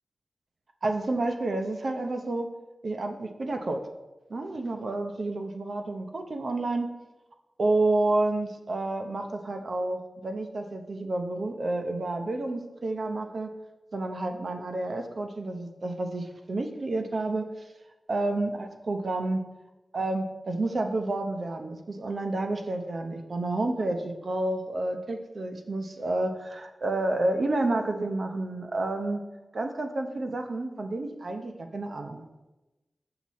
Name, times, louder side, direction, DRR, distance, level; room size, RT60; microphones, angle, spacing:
voice 1, 0.8-2.5 2.8-3.8 4.3-6.9 7.6-13.5 13.9-17.7 18.1-19.4 19.9-29.2 29.5-32.2, right 2 dB, 65° right, 5 dB, 0.7 m, -30 dB
7.9 x 5.8 x 4.2 m, 1.0 s
cardioid pair, 50°, 0 cm